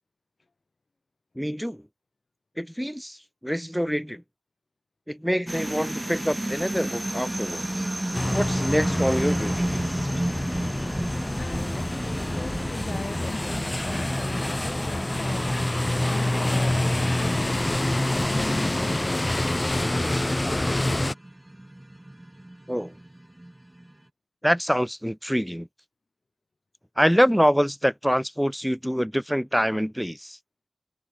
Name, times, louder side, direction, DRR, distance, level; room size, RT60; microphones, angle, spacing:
voice 1, 1.4-1.8 2.6-3.2 3.4-4.2 5.1-7.8 8.3-10.1 22.7-22.9 24.4-25.7 27.0-30.4, equal, ahead, 0.5 m, -25 dB
sound 1, 5.5-23.9, right 1 dB, 15° right, 5.1 m, -33 dB
sound 2, 8.1-21.1, left 1 dB, 20° left, 2.9 m, -27 dB
voice 2, 11.4-15.6 16.0-20.3, left 3 dB, 50° left, 6.3 m, -38 dB
wide cardioid pair, 100°, 0 cm